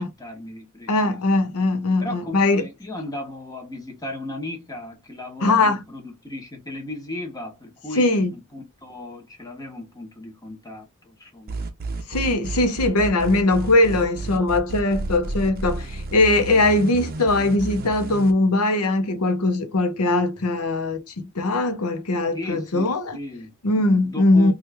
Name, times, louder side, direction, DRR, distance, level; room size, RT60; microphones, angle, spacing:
voice 1, 0.0-1.2 2.0-11.6 22.3-23.5 24.0-24.5, left 2 dB, 15° left, 0.9 m, -36 dB
voice 2, 0.9-2.7 5.4-5.8 8.0-8.3 12.1-23.2 23.6-24.5, left 2 dB, 90° left, 0.7 m, -20 dB
sound 1, 11.5-18.3, right 2 dB, 45° right, 0.6 m, -31 dB
3.0 x 2.4 x 3.3 m
head